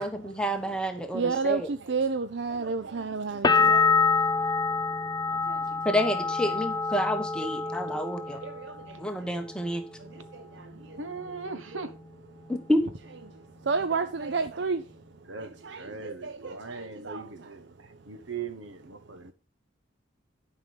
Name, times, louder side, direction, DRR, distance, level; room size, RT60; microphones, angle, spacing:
voice 1, 0.0-1.7 5.8-8.4 9.0-9.8 12.5-12.8, equal, 5° left, 1.1 m, -29 dB
voice 2, 1.1-4.0 5.3-5.8 6.5-6.6 7.4-8.0 8.3-9.3 10.0-11.4 11.7-12.0 13.3-14.9 15.4-17.6 17.9-18.0, right 4 dB, 65° right, 0.5 m, -33 dB
sound 1, 3.4-9.1 9.4-10.1, left 4 dB, 20° left, 0.5 m, -26 dB
voice 3, 11.0-11.9 15.3-15.5 15.8-17.6 18.1-19.3, right 4 dB, 85° right, 1.3 m, -39 dB
11.5 x 5.5 x 5.3 m
head